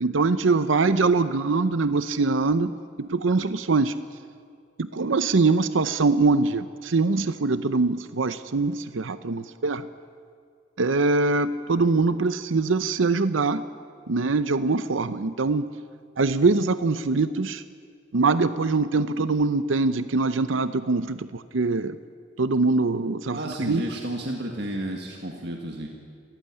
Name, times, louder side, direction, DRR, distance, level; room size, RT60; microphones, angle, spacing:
voice 1, 0.0-4.0 4.8-9.9 10.8-13.7 14.1-15.7 16.2-17.6 18.1-22.0 22.4-23.8, right 3 dB, 80° right, 12 dB, 0.7 m, -23 dB
voice 2, 23.3-25.9, right 1 dB, 55° right, 1 dB, 2.0 m, -31 dB
27.0 x 15.0 x 9.8 m, 2.1 s
head